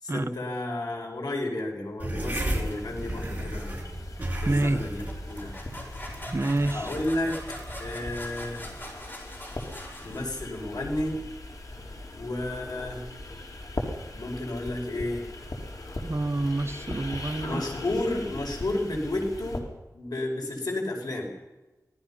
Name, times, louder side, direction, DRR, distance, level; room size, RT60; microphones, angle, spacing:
voice 1, 0.0-3.8 4.4-5.0 5.3-5.5 6.6-7.4 7.8-8.6 10.0-11.2 12.1-13.0 14.1-15.2 17.4-19.6 19.9-21.3, left 1 dB, 85° left, 5.4 m, -32 dB
sound 1, 2.0-8.9, right 1 dB, 25° right, 6.3 m, -35 dB
sound 2, 2.4-19.6, left 2 dB, 65° left, 4.0 m, -39 dB
voice 2, 4.5-4.8 6.3-6.8 16.0-17.6, right 2 dB, 40° right, 1.3 m, -27 dB
sound 3, 5.1-10.7, left 1 dB, 30° left, 7.3 m, -43 dB
26.0 x 18.5 x 5.7 m
wide cardioid pair, 75°, 7 cm